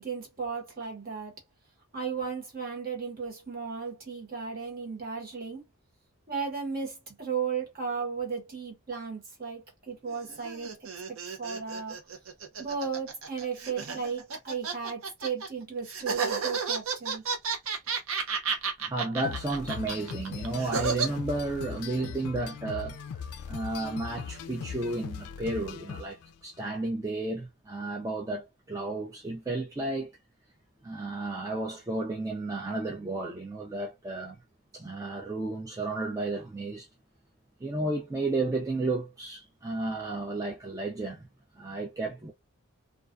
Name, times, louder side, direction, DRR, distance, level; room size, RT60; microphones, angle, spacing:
voice 1, 0.0-1.3 1.9-5.6 6.3-10.9 11.4-12.0 12.6-17.2, right 5 dB, 40° right, 1.0 m, -35 dB
sound 1, 10.1-15.5 15.9-21.1, right 5 dB, 70° right, 0.6 m, -32 dB
voice 2, 18.8-23.0 23.5-30.1 30.8-34.4 34.7-36.9 37.6-41.3 41.5-42.3, right 2 dB, 15° right, 0.3 m, -32 dB
sound 2, 19.2-26.4, left 7 dB, 85° left, 0.3 m, -40 dB
2.3 x 2.2 x 2.4 m
head